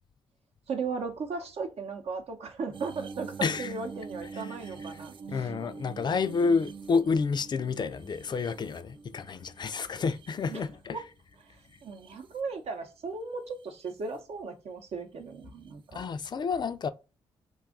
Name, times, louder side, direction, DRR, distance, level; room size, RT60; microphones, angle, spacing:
voice 1, 0.7-5.5 10.5-10.6 10.9-11.0 11.8-16.0, right 4 dB, 70° right, 0.7 m, -36 dB
sound 1, 2.7-11.1 11.6-12.4 13.6-13.9 15.7-15.8, right 5 dB, 50° right, 0.4 m, -45 dB
voice 2, 3.4-3.7 4.4-4.5 5.3-11.0 15.9-16.9, left 5 dB, 40° left, 0.3 m, -29 dB
2.6 x 2.4 x 3.5 m
supercardioid pair, 60°, 11 cm